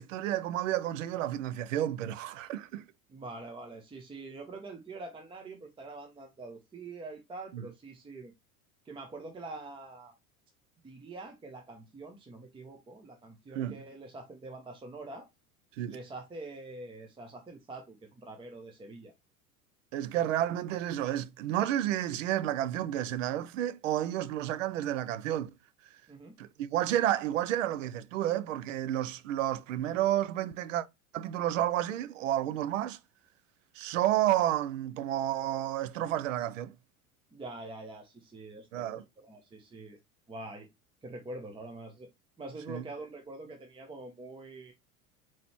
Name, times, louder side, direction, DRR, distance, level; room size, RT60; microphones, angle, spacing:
voice 1, 0.0-2.8 7.5-7.6 13.5-13.8 15.8-16.0 19.9-25.5 26.4-30.9 31.1-33.0 33.7-36.7 38.7-39.0 42.7-42.8, right 12 dB, 60° right, 0.6 m, -31 dB
voice 2, 3.1-8.3 8.8-10.1 10.8-15.3 15.9-19.1 26.1-26.4 37.3-40.0 40.3-40.7 41.0-42.1 42.4-44.7, right 2 dB, 10° right, 0.8 m, -45 dB
4.4 x 3.9 x 3.0 m
figure-of-eight pair, 80°, 44 cm